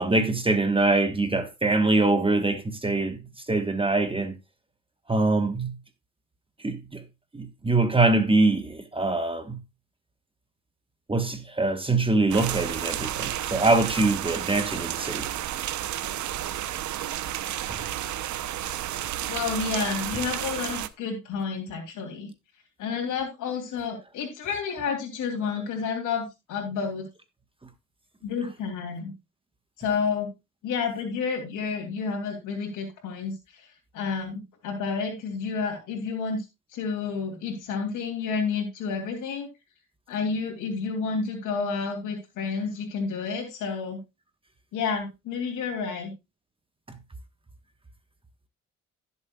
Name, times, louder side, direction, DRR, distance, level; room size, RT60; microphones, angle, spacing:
voice 1, 0.0-3.2 3.5-4.3 5.1-5.8 6.6-7.0 7.3-9.6 11.1-15.3, right 2 dB, 15° right, 1.3 m, -23 dB
sound 1, 12.3-20.9, right 12 dB, 70° right, 0.8 m, -32 dB
voice 2, 19.3-22.3 22.8-27.1 28.2-29.1 29.8-30.3 30.6-36.5 36.7-39.5 40.1-44.0 44.7-46.1, left 5 dB, 80° left, 2.9 m, -30 dB
16.0 x 7.1 x 2.4 m
cardioid pair, 90°, 30 cm